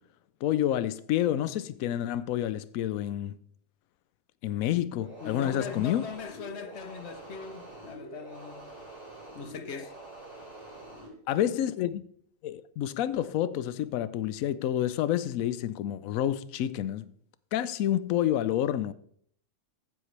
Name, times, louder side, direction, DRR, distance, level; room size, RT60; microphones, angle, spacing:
voice 1, 0.4-3.4 4.4-6.0 11.3-12.0 12.4-17.1 17.5-18.9, left 11 dB, 80° left, 1.0 m, -29 dB
sound 1, 5.0-11.1, right 2 dB, 40° left, 5.1 m, -46 dB
voice 2, 5.2-8.8 9.3-10.0, left 6 dB, 60° left, 1.0 m, -40 dB
14.5 x 7.7 x 3.3 m
omnidirectional pair, 1.4 m